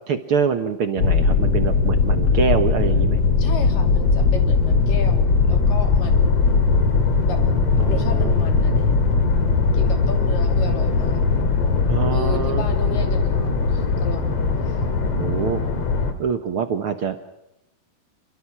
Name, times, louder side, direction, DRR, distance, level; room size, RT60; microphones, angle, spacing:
voice 1, 0.1-3.2 7.8-8.3 11.9-12.7 15.0-15.6 16.2-17.1, right 6 dB, 65° right, 7 dB, 1.4 m, -25 dB
sound 1, 1.0-16.1, left 4 dB, 50° left, 3.0 m, -19 dB
voice 2, 3.4-6.3 7.3-7.4 7.9-9.2 9.7-11.2 12.1-14.3 14.6-14.8, left 4 dB, 70° left, 4 dB, 4.5 m, -34 dB
30.0 x 22.0 x 6.1 m, 0.87 s
omnidirectional pair, 4.1 m